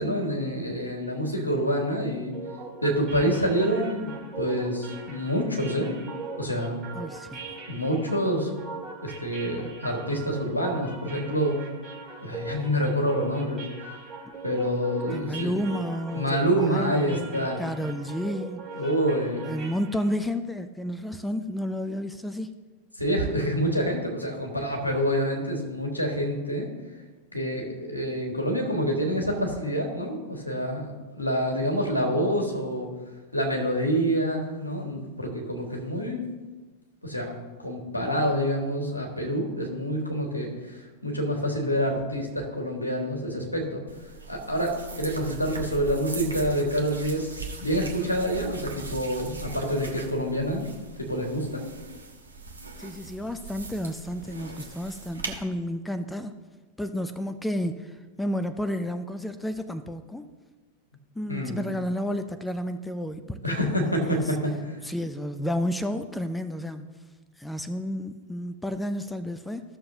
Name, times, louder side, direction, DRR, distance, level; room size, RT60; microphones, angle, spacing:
voice 1, 0.0-2.3 2.8-5.9 6.4-6.8 7.7-8.5 9.0-11.6 12.2-13.6 14.4-15.6 16.1-17.6 18.8-19.5 23.0-26.7 27.3-30.9 31.1-32.9 33.3-36.2 37.0-37.3 37.6-43.8 44.3-50.6 51.0-51.6 61.3-61.6 63.4-64.8, equal, 85° left, 1 dB, 1.7 m, -27 dB
sound 1, 2.3-20.2, right 4 dB, 25° right, 2.8 m, -40 dB
voice 2, 6.9-7.4 15.1-18.7 19.5-22.5 52.8-56.3 56.8-60.3 61.2-64.4 64.8-66.9 67.4-69.6, equal, 5° left, 10 dB, 0.5 m, -31 dB
sound 2, 43.9-55.4, right 4 dB, 75° right, 1.1 m, -40 dB
15.0 x 6.6 x 2.7 m, 1.3 s
figure-of-eight pair, 90°, 0 cm